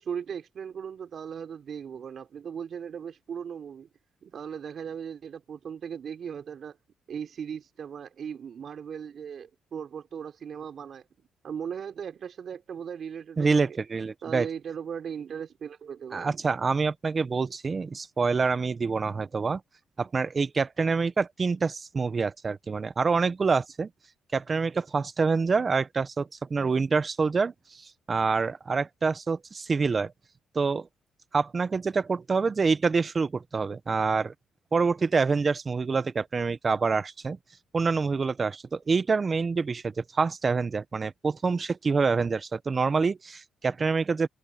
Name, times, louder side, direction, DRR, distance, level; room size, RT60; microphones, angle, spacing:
voice 1, 0.0-3.9 4.2-6.8 7.1-11.0 11.4-13.8 14.2-16.4, right 7 dB, 55° right, 4.7 m, -38 dB
voice 2, 13.4-14.5 16.1-19.6 20.0-23.9 24.3-30.1 30.5-30.9 31.3-34.3 34.7-37.4 37.7-44.3, right 4 dB, 35° right, 1.1 m, -26 dB
cardioid pair, 90°, 0 cm